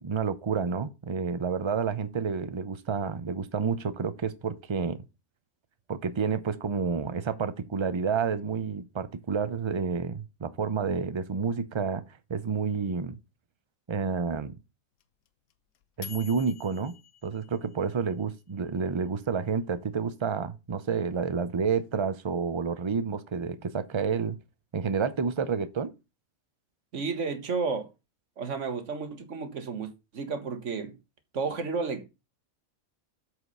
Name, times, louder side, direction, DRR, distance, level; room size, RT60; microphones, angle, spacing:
voice 1, 0.0-5.0 5.9-12.0 12.3-13.2 13.9-14.6 16.0-17.0 17.2-24.4 24.7-25.9, right 5 dB, 35° right, 0.4 m, -29 dB
sound 1, 15.0-18.2, left 10 dB, 75° left, 1.2 m, -47 dB
voice 2, 26.9-27.9 28.4-31.0 31.3-32.1, right 4 dB, 60° right, 1.6 m, -32 dB
8.0 x 4.9 x 5.5 m
omnidirectional pair, 1.5 m